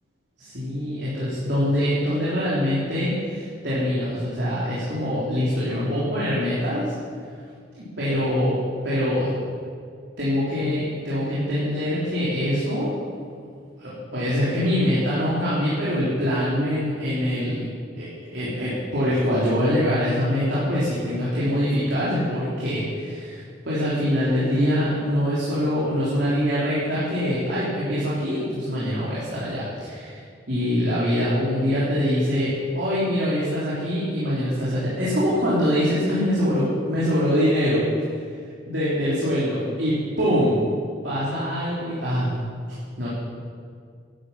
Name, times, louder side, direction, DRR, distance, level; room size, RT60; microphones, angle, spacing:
voice 1, 0.4-6.9 7.8-8.5 8.8-9.3 10.2-12.9 13.8-17.6 18.0-30.2 30.5-37.8 38.1-38.4 38.7-40.5 41.0-42.3 43.0-43.1, equal, 75° right, -9 dB, 3.4 m, -24 dB
11.5 x 10.0 x 7.2 m, 2.2 s
head